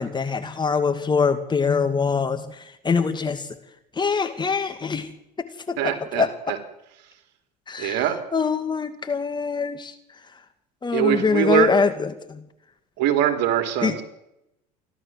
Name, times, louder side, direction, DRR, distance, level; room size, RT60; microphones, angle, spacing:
voice 1, 0.0-3.5 4.0-5.1 5.7-6.3 7.7-8.0 8.3-9.9 10.8-12.5 13.8-13.9, left 5 dB, 20° left, 8 dB, 2.4 m, -24 dB
voice 2, 5.8-6.6 7.8-8.2 10.9-11.7 13.0-14.0, right 11 dB, 60° right, 6 dB, 3.4 m, -22 dB
28.0 x 12.0 x 7.7 m, 0.86 s
hypercardioid pair, 75°, 21 cm